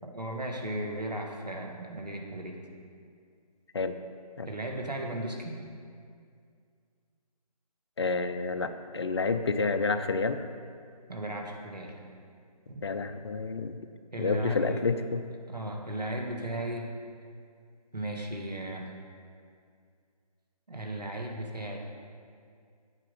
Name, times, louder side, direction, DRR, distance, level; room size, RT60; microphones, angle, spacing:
voice 1, 0.0-2.6 4.4-5.6 11.1-11.9 12.7-12.8 14.1-14.9 15.5-16.9 17.9-18.9 20.7-21.8, right 1 dB, 90° right, 1 dB, 1.7 m, -36 dB
voice 2, 8.0-10.4 12.8-13.8 14.2-15.2, left 4 dB, 40° left, 10 dB, 0.5 m, -29 dB
9.0 x 4.8 x 7.2 m, 2.2 s
figure-of-eight pair, 150°, 20 cm